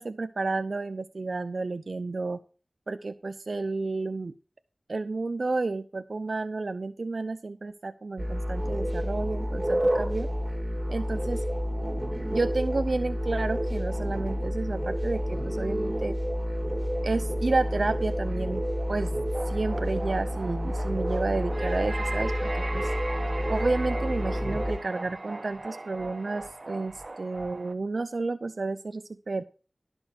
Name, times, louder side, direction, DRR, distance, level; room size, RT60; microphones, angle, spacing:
voice 1, 0.0-2.4 2.9-4.3 4.9-10.3 10.9-11.4 12.3-16.2 17.0-18.6 18.9-19.1 19.5-22.9 23.5-29.4, right 3 dB, 70° right, 10 dB, 0.6 m, -31 dB
sound 1, 8.2-24.8, equal, 15° right, 3.2 m, -29 dB
sound 2, 19.3-27.7, right 2 dB, 50° right, 1.1 m, -38 dB
11.5 x 6.2 x 6.2 m, 0.36 s
wide cardioid pair, 60°, 0 cm